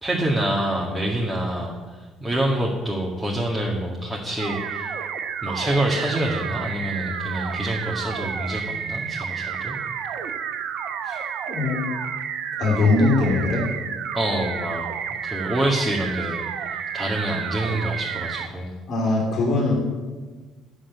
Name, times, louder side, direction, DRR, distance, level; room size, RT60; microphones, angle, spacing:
voice 1, 0.0-4.9 5.4-9.8 14.1-14.9 15.2-18.7, right 1 dB, 10° right, -3 dB, 2.1 m, -26 dB
sound 1, 4.4-18.5, right 7 dB, 55° right, 0.9 m, -31 dB
voice 2, 11.5-11.8 12.6-13.6 18.9-19.7, left 3 dB, 45° left, -1 dB, 3.0 m, -21 dB
9.9 x 7.8 x 9.7 m, 1.4 s
figure-of-eight pair, 50°, 0 cm